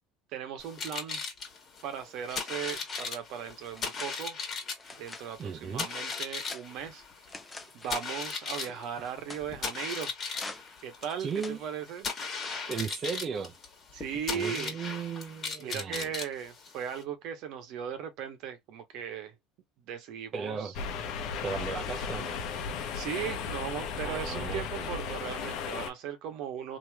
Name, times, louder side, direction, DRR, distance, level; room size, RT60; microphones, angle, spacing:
voice 1, 0.3-1.2 1.8-4.4 4.9-7.0 7.7-10.1 10.8-12.1 13.9-14.8 15.6-19.3 19.9-20.7 22.9-26.8, right 8 dB, 65° right, 1.0 m, -37 dB
sound 1, 0.6-17.0, left 5 dB, 40° left, 1.5 m, -38 dB
sound 2, 2.4-3.1 3.6-4.2 4.7-5.3 5.9-6.7 7.3-8.1 8.5-9.5 10.3-10.8 11.3-11.6 12.4-12.7, left 3 dB, 15° left, 0.6 m, -46 dB
voice 2, 5.4-5.9 7.6-7.7 8.7-9.1 11.2-11.6 12.7-13.5 14.3-16.1 20.3-20.7 21.4-22.4 24.0-24.9, right 6 dB, 35° right, 0.5 m, -36 dB
sound 3, 20.7-25.9, left 6 dB, 60° left, 0.7 m, -35 dB
3.1 x 2.8 x 2.3 m
supercardioid pair, 105°, 0 cm